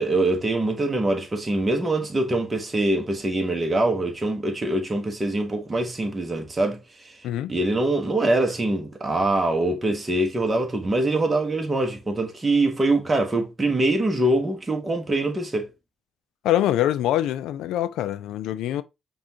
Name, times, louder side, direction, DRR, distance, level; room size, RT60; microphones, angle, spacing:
voice 1, 0.0-15.7, right 2 dB, 25° right, 1.0 m, -24 dB
voice 2, 7.2-7.5 16.4-18.8, left 12 dB, 90° left, 0.3 m, -24 dB
5.0 x 2.3 x 2.7 m
cardioid pair, 90°, 0 cm